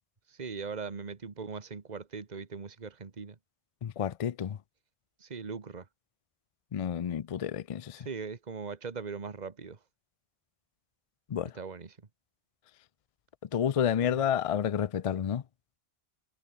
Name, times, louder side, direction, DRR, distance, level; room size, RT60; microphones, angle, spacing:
voice 1, 0.3-3.4 5.2-5.9 8.0-9.8 11.5-12.0 14.0-14.2, right 5 dB, 40° right, 1.5 m, -40 dB
voice 2, 3.8-4.6 6.7-8.1 11.3-11.5 13.5-15.4, left 9 dB, 50° left, 0.4 m, -30 dB
omnidirectional pair, 1.1 m